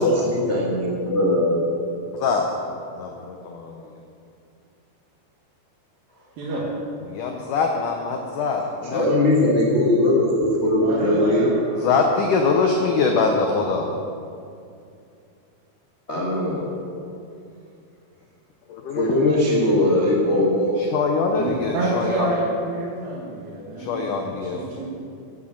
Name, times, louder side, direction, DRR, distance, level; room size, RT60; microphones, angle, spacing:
voice 1, 0.0-1.6 8.9-11.5 16.1-16.6 18.9-20.8, left 1 dB, 55° left, -5 dB, 0.7 m, -20 dB
voice 2, 2.1-2.4 2.9-3.7 7.1-9.1 11.8-13.9 18.7-19.1 20.8-22.3 23.8-24.6, left 4 dB, 85° left, 2 dB, 1.8 m, -23 dB
voice 3, 6.4-6.7 10.8-12.0 12.8-13.6 21.4-24.9, right 2 dB, 60° right, -5 dB, 3.4 m, -29 dB
12.5 x 9.4 x 7.6 m, 2.5 s
omnidirectional pair, 4.9 m